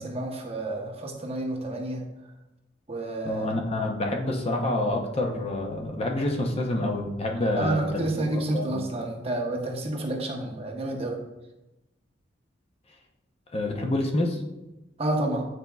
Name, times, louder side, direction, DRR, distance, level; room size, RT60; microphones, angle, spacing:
voice 1, 0.0-2.0 2.9-3.5 7.6-11.2 15.0-15.5, right 1 dB, 35° right, 1 dB, 0.9 m, -29 dB
voice 2, 3.2-8.0 8.3-8.8 13.5-14.4, left 1 dB, 35° left, 1 dB, 0.7 m, -27 dB
9.3 x 4.5 x 2.3 m, 1.0 s
head